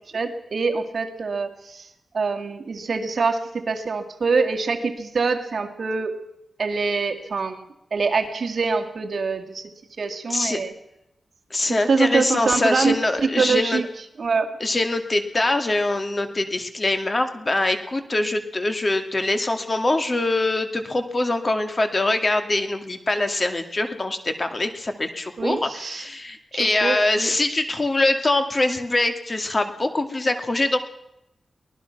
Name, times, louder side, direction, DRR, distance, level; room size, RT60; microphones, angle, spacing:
voice 1, 0.1-1.9 2.1-6.2 6.6-9.7 10.0-10.7 11.8-13.9 14.2-14.5 25.4-26.0 26.5-27.3, right 4 dB, 55° right, 5 dB, 2.2 m, -25 dB
voice 2, 10.3-10.6 11.5-13.8 14.6-30.8, left 2 dB, 30° left, 7 dB, 2.2 m, -23 dB
24.0 x 19.0 x 6.0 m, 0.84 s
wide cardioid pair, 130°, 0 cm